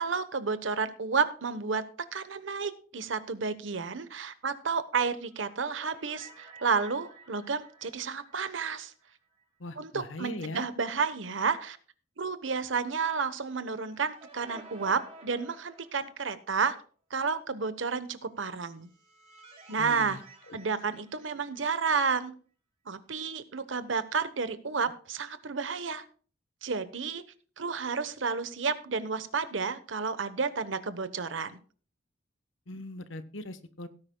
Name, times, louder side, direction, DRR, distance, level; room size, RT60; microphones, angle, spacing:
voice 1, 0.0-1.8 2.1-8.9 9.8-11.8 12.2-16.8 17.1-18.9 19.7-20.2 20.5-22.3 22.9-26.0 26.6-27.2 27.6-31.6, right 5 dB, 85° right, 12 dB, 1.1 m, -31 dB
sound 1, 5.1-9.4 9.7-9.8 13.3-16.5 18.5-21.9, right 3 dB, 35° right, 3.4 m, -53 dB
voice 2, 9.6-10.6 19.8-20.2 20.5-20.6 32.7-33.9, left 2 dB, 80° left, 12 dB, 1.1 m, -40 dB
17.5 x 9.8 x 2.3 m, 0.40 s
head